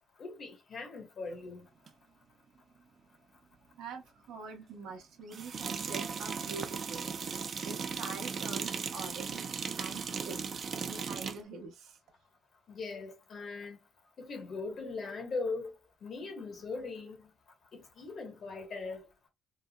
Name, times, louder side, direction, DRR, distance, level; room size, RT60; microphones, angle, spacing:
voice 1, 0.2-1.6 12.7-13.8 14.2-15.7 16.0-17.2 17.7-19.0, left 3 dB, 60° left, 1.1 m, -40 dB
sound 1, 1.9-2.0 5.3-11.4, right 6 dB, 50° right, 0.5 m, -37 dB
voice 2, 3.8-7.0 7.6-10.5 10.8-12.0, right 4 dB, 90° right, 0.8 m, -45 dB
3.8 x 2.0 x 2.2 m
cardioid pair, 90°, 0 cm